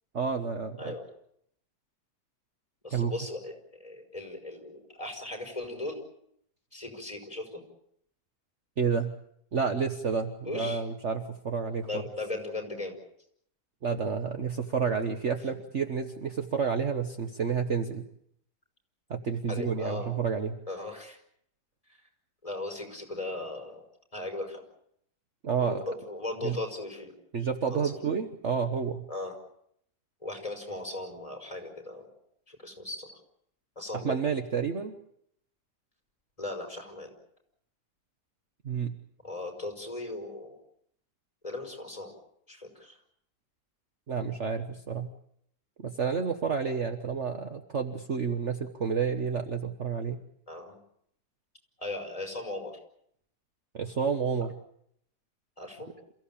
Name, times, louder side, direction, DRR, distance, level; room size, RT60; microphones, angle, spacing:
voice 1, 0.1-0.9 2.9-3.1 8.8-9.1 9.5-11.9 13.8-18.0 19.1-20.6 25.4-25.8 26.4-26.6 27.3-29.1 33.9-35.0 38.6-38.9 44.1-45.1 45.8-50.2 53.7-54.5, right 6 dB, 45° right, 6 dB, 1.4 m, -30 dB
voice 2, 2.8-6.0 6.7-7.6 10.4-10.8 11.9-13.0 19.5-20.1 20.7-21.2 21.9-22.0 22.4-23.8 24.1-24.6 25.6-27.1 27.7-28.0 29.1-29.3 30.2-32.1 32.5-33.2 33.7-34.2 36.4-37.1 39.2-40.6 41.4-42.1 42.5-43.0 50.5-50.8 51.8-52.8 55.6-55.9, left 2 dB, 20° left, 3 dB, 5.1 m, -37 dB
28.0 x 15.5 x 8.6 m, 0.70 s
omnidirectional pair, 1.8 m